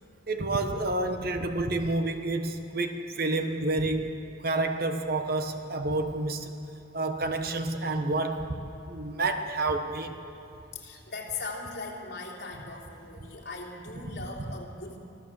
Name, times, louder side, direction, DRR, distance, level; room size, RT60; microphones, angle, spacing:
voice 1, 0.3-4.1 4.4-6.5 6.9-10.2 14.1-14.2, right 2 dB, 50° right, 6 dB, 1.1 m, -29 dB
voice 2, 10.4-15.0, left 3 dB, 50° left, -2 dB, 3.3 m, -39 dB
25.5 x 14.5 x 7.5 m, 2.7 s
head